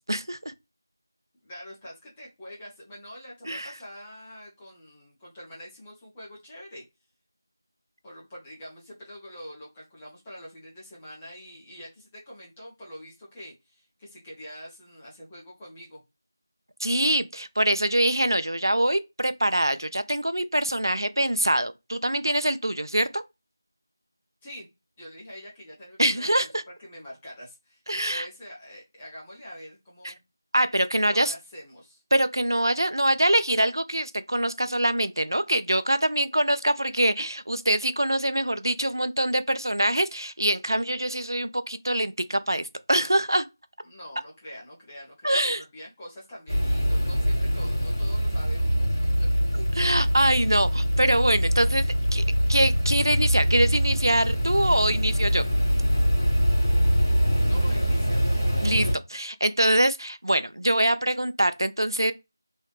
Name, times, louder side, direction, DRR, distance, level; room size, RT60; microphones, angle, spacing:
voice 1, 0.1-0.4 3.5-3.7 16.8-23.2 26.0-26.6 27.9-28.3 30.0-30.1 30.5-31.3 32.1-43.5 45.2-45.6 49.7-51.8 52.1-52.2 52.5-55.4 58.6-62.1, right 1 dB, 85° right, 0.4 m, -24 dB
voice 2, 1.4-6.8 8.0-16.0 24.4-24.7 25.0-26.5 26.8-30.2 31.0-32.0 43.8-48.9 49.2-49.3 57.2-58.2, equal, 10° left, 0.6 m, -44 dB
sound 1, 46.5-58.9, equal, 55° left, 1.7 m, -23 dB
3.1 x 2.0 x 3.0 m
figure-of-eight pair, 170°, 2 cm